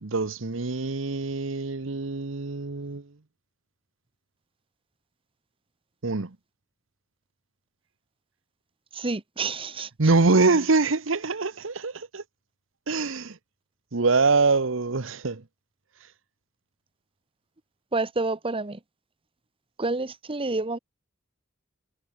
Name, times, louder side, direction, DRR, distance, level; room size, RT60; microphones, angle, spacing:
voice 1, 0.0-3.1 6.0-6.4 10.0-12.2 12.9-13.4 13.9-15.4, right 3 dB, 70° right, 1.1 m, -24 dB
voice 2, 8.9-9.9 17.9-18.8 19.8-20.8, right 3 dB, 25° right, 1.2 m, -28 dB
head